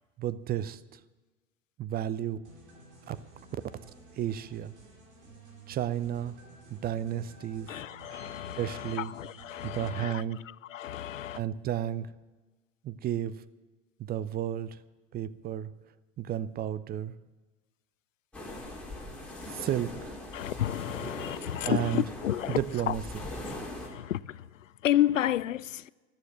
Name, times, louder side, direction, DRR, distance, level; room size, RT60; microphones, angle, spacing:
voice 1, 0.2-1.0 1.8-2.4 3.1-3.2 4.2-4.7 5.7-6.4 6.7-7.7 8.6-9.1 9.6-10.4 11.3-12.1 12.8-13.4 14.0-14.8 15.1-15.7 16.2-17.1 19.5-20.2 21.6-22.0 22.5-23.0, right 11 dB, 25° right, 0.6 m, -32 dB
sound 1, 2.4-9.8, right 2 dB, 60° right, 5.3 m, -53 dB
voice 2, 7.7-11.4 20.3-22.6 22.9-23.0 23.5-25.9, left 12 dB, 80° left, 0.5 m, -31 dB
sound 2, 18.3-23.9, left 1 dB, 5° left, 4.2 m, -41 dB
14.5 x 12.0 x 7.5 m
figure-of-eight pair, 85°, 38 cm